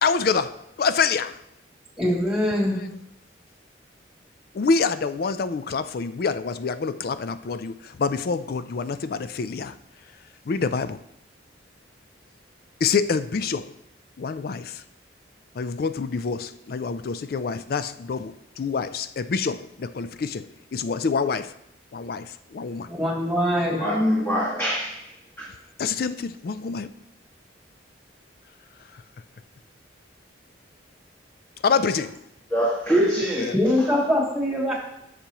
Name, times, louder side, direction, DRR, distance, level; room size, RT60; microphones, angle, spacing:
voice 1, 0.0-1.4 2.4-3.0 4.5-9.8 10.5-11.0 12.8-13.7 14.2-14.8 15.5-21.5 21.9-22.9 23.3-24.0 25.8-26.9 28.9-29.0 31.6-32.2 33.4-33.6, left 5 dB, 50° left, 0.4 m, -27 dB
voice 2, 2.0-2.8 22.9-23.8 33.5-34.7, left 1 dB, 5° right, 2.5 m, -23 dB
voice 3, 23.8-24.9 25.4-25.5 32.5-33.9, equal, 10° left, 1.8 m, -23 dB
11.5 x 6.8 x 3.0 m
head